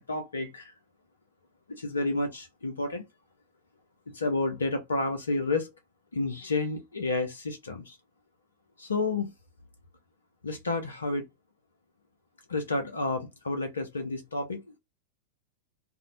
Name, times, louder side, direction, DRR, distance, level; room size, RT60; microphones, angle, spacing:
voice 1, 0.1-0.7 1.7-3.0 4.1-5.7 6.1-8.0 8.8-9.3 10.4-11.2 12.5-14.8, left 3 dB, 75° left, 0.4 m, -30 dB
2.5 x 2.0 x 2.5 m
figure-of-eight pair, 90°, 0 cm